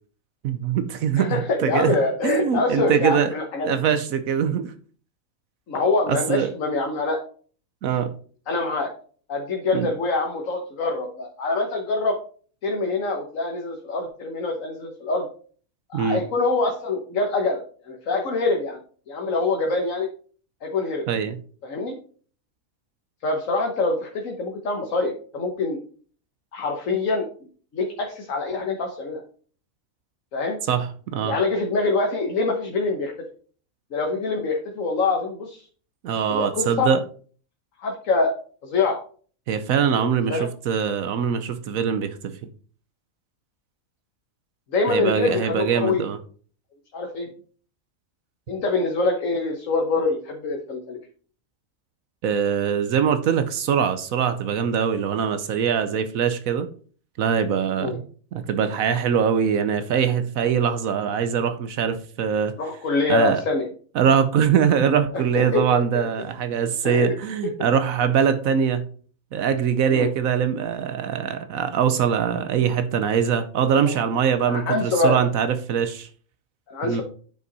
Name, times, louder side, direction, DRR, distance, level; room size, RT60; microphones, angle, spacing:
voice 1, 0.4-2.0 2.2-3.3 3.6-4.7 6.1-6.5 7.8-8.1 9.7-9.9 15.9-16.2 21.1-21.4 30.7-31.4 36.0-37.0 39.5-42.3 44.9-46.2 52.2-56.7 57.2-58.0 58.3-62.5 63.1-63.4 63.9-68.9 69.3-76.1 76.8-77.0, right 7 dB, 80° right, 9 dB, 1.2 m, -22 dB
voice 2, 1.2-3.8 5.7-7.2 8.5-8.9 9.3-12.1 12.6-15.3 15.9-18.8 19.1-20.1 20.6-21.1 21.6-21.9 23.2-25.8 26.5-27.3 27.7-29.2 30.3-30.6 31.2-33.1 33.9-35.7 36.3-36.9 37.8-38.3 38.6-39.0 40.0-40.5 44.7-46.0 46.9-47.3 48.5-51.0 57.8-58.0 62.6-63.7 65.1-65.2 65.5-65.6 66.8-67.1 69.9-70.1 73.8-73.9 74.5-75.2 76.7-77.0, left 3 dB, 70° left, 2 dB, 1.5 m, -25 dB
8.9 x 5.6 x 4.0 m, 0.43 s
omnidirectional pair, 1.4 m